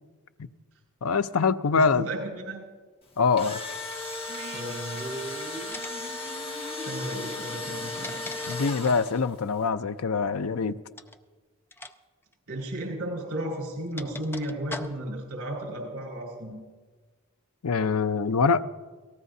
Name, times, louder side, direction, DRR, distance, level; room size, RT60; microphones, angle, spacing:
voice 1, 1.0-2.1 3.2-3.6 8.5-10.8 17.6-18.6, left 5 dB, 70° left, 0.5 m, -24 dB
voice 2, 1.7-2.6 4.5-5.2 6.8-8.3 12.5-16.6, right 1 dB, 75° right, 5.1 m, -34 dB
Engine / Drill, 3.1-9.4, left 2 dB, 25° left, 1.6 m, -36 dB
sound 1, 4.1-9.4, equal, 25° right, 2.2 m, -43 dB
sound 2, 5.0-5.3 5.7-6.1 7.6-9.1 10.9-11.2 11.7-12.0 12.2-12.3 13.3-15.3, left 2 dB, 10° left, 0.6 m, -42 dB
27.0 x 18.5 x 2.7 m
head